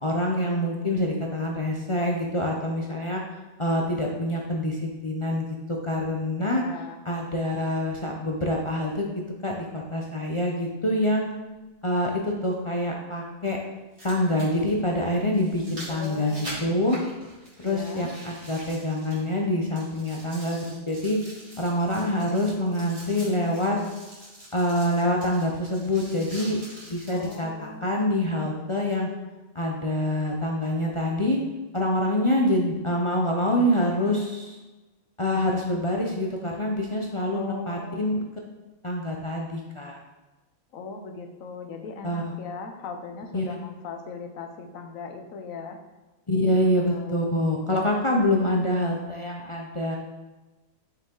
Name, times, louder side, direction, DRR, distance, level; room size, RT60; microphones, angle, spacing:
voice 1, 0.0-3.2 3.6-5.6 5.8-6.6 7.0-9.1 9.4-11.3 11.8-13.6 14.0-16.3 16.6-17.0 17.6-21.2 21.6-23.8 24.5-26.6 26.9-29.1 29.5-31.4 31.7-34.6 35.2-38.2 38.8-40.0 42.0-42.3 43.3-43.5 46.3-50.0, left 1 dB, 40° left, -1 dB, 0.4 m, -26 dB
voice 2, 6.4-7.0 15.9-16.7 17.6-18.1 27.1-27.8 37.3-38.1 40.7-45.8 46.3-47.3, left 4 dB, 75° left, 4 dB, 1.2 m, -39 dB
sound 1, 10.5-10.6 12.5-12.6 13.7-19.4 19.7-27.4 28.0-28.1, right 1 dB, 40° right, 2.3 m, -44 dB
6.4 x 4.7 x 3.8 m, 1.1 s
omnidirectional pair, 1.4 m